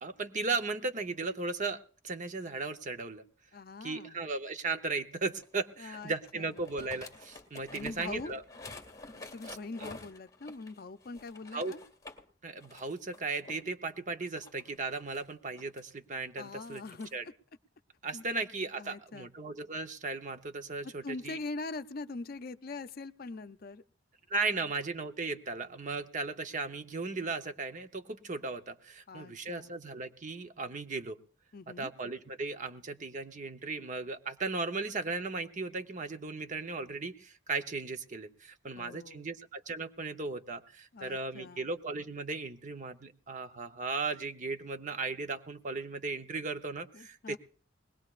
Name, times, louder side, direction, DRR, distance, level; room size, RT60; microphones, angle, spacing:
voice 1, 0.0-3.2 3.8-8.4 9.8-9.9 11.5-11.7 12.4-16.8 17.1-17.2 18.0-21.4 24.3-31.2 31.8-47.4, right 3 dB, 40° right, 8 dB, 0.9 m, -36 dB
voice 2, 3.5-4.3 5.8-6.6 7.7-8.4 9.3-11.8 16.4-17.1 18.1-18.3 18.8-19.3 21.0-23.8 24.5-24.6 29.1-29.7 31.5-31.9 38.7-39.3 40.9-41.7 46.9-47.4, left 3 dB, 50° left, 11 dB, 0.6 m, -43 dB
sound 1, 5.4-12.2 12.6-13.6 14.3-15.8 16.5-17.2, left 3 dB, 20° left, 1.9 m, -50 dB
21.0 x 19.0 x 2.5 m, 0.43 s
head